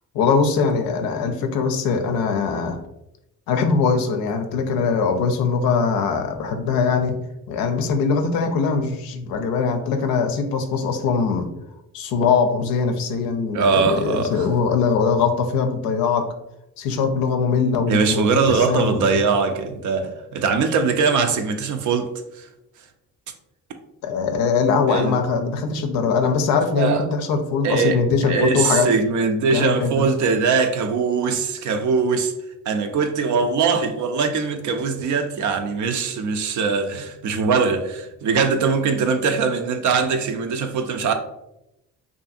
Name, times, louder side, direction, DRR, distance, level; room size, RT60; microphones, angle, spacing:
voice 1, 0.1-2.8 3.5-7.2 7.5-11.5 11.9-16.3 16.8-19.2 24.0-28.9 29.5-30.1, left 5 dB, 85° left, 0.5 m, -21 dB
voice 2, 13.5-14.5 17.9-22.5 24.9-25.1 26.8-27.0 27.6-32.3 32.7-41.1, right 5 dB, 60° right, 0.5 m, -21 dB
2.7 x 2.6 x 2.4 m
cardioid pair, 70°, 35 cm